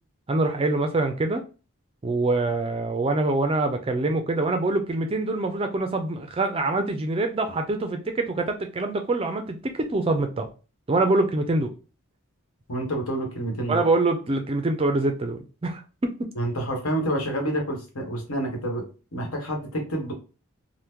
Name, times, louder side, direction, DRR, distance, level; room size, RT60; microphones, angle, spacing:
voice 1, 0.3-1.4 2.0-10.5 10.9-11.7 13.7-16.3, right 2 dB, 25° right, 0.3 m, -25 dB
voice 2, 12.7-13.8 16.4-18.8 19.1-20.1, right 1 dB, 75° left, 1.1 m, -28 dB
2.9 x 2.1 x 3.5 m
head